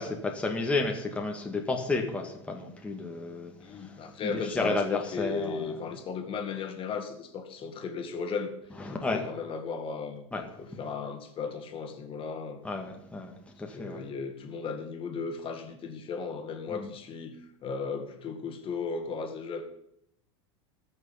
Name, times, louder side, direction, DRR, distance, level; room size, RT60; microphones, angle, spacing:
voice 1, 0.0-5.8 8.8-9.2 10.3-10.5 12.6-14.0 16.7-16.9, left 3 dB, 10° left, 1 dB, 1.8 m, -32 dB
voice 2, 3.6-8.5 8.9-10.3 10.6-12.6 13.7-17.3 17.6-19.6, left 5 dB, 35° left, 5 dB, 2.0 m, -36 dB
19.5 x 6.6 x 5.7 m, 0.74 s
supercardioid pair, 115°, 16 cm